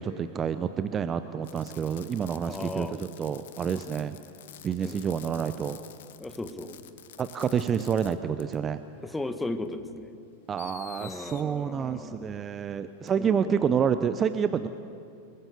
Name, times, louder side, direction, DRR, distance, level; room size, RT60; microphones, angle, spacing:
voice 1, 0.0-4.2 4.6-5.8 7.2-8.8 10.5-14.7, right 7 dB, 25° right, 12 dB, 0.8 m, -28 dB
Fireworks, 1.4-8.1 8.4-8.6 9.6-9.7 10.6-11.4 13.1-13.2, left 11 dB, 55° left, 1.2 m, -48 dB
voice 2, 2.5-3.0 4.8-5.0 6.2-6.8 9.0-10.1 11.0-12.5 13.2-13.6, left 2 dB, 5° left, 9 dB, 1.6 m, -36 dB
29.0 x 21.0 x 6.9 m, 2.6 s
figure-of-eight pair, 90°, 0 cm